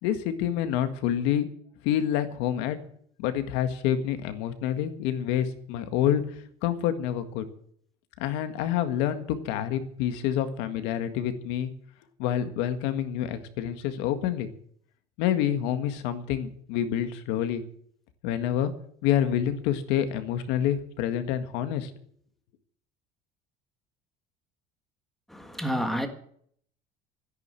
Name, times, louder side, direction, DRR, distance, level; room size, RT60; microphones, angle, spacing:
voice 1, 0.0-1.5 1.8-2.8 3.2-6.2 6.6-7.4 8.2-11.7 12.2-14.5 15.2-17.6 18.2-18.7 19.0-21.9, left 10 dB, 80° left, 1.8 m, -27 dB
voice 2, 25.3-26.1, equal, ahead, 1.6 m, -29 dB
13.5 x 10.5 x 7.7 m
cardioid pair, 160°, 17 cm